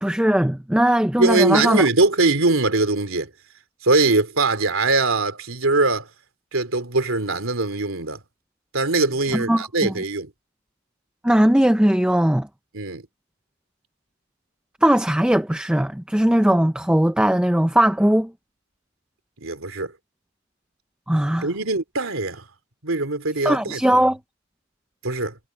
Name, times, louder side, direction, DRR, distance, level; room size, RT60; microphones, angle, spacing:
voice 1, 0.0-1.9 9.3-9.9 11.2-12.5 14.8-18.3 21.1-21.5 23.4-24.2, right 1 dB, 5° right, 0.4 m, -19 dB
voice 2, 1.2-3.3 3.8-6.1 6.5-8.2 8.7-10.3 12.7-13.0 19.4-19.9 21.4-22.4 22.8-23.8 25.0-25.4, right 3 dB, 75° right, 3.0 m, -21 dB
head